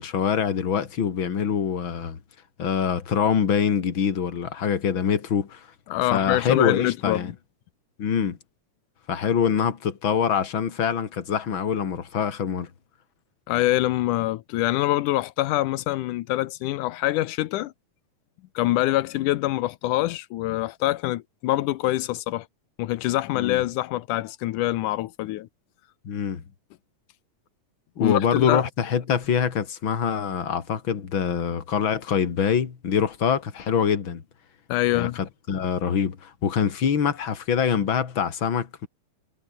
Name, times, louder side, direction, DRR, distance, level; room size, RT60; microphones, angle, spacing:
voice 1, 0.0-2.2 2.6-5.7 6.1-7.3 8.0-8.4 9.1-12.7 23.3-23.6 26.0-26.4 28.0-34.2 34.9-38.9, left 7 dB, 40° left, 2.9 m, -24 dB
voice 2, 5.9-7.3 13.5-17.7 18.6-22.5 22.8-25.5 28.0-28.6 34.7-35.2, left 16 dB, 90° left, 2.4 m, -25 dB
omnidirectional pair, 3.5 m